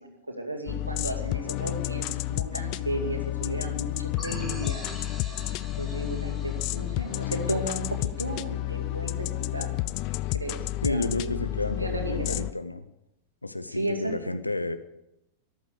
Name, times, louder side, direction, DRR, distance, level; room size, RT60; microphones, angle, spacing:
voice 1, 0.0-4.8 5.8-9.9 10.3-10.6 10.9-11.4 11.7-12.5 13.7-14.3, right 1 dB, 85° right, 3 dB, 2.3 m, -34 dB
sound 1, 0.7-12.5, left 16 dB, 45° left, 0.5 m, -31 dB
sound 2, 4.2-8.6, equal, 5° left, 3.6 m, -45 dB
voice 2, 10.8-12.8 13.4-14.8, left 2 dB, 85° left, 11 dB, 0.8 m, -31 dB
13.5 x 11.5 x 6.7 m, 0.86 s
figure-of-eight pair, 90°, 0 cm